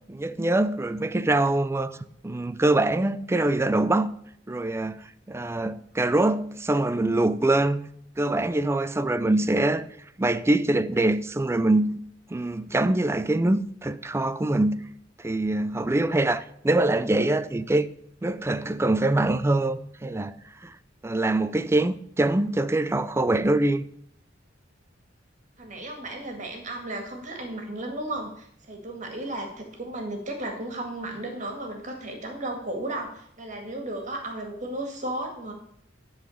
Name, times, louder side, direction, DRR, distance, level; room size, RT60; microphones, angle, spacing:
voice 1, 0.1-2.0 2.2-4.1 4.5-7.9 8.2-9.9 10.2-12.0 12.3-14.8 15.2-17.9 18.2-20.7 21.0-23.8, right 2 dB, 15° right, 0.4 m, -24 dB
voice 2, 25.6-35.5, right 1 dB, 40° right, 1.8 m, -34 dB
11.0 x 4.0 x 7.1 m
head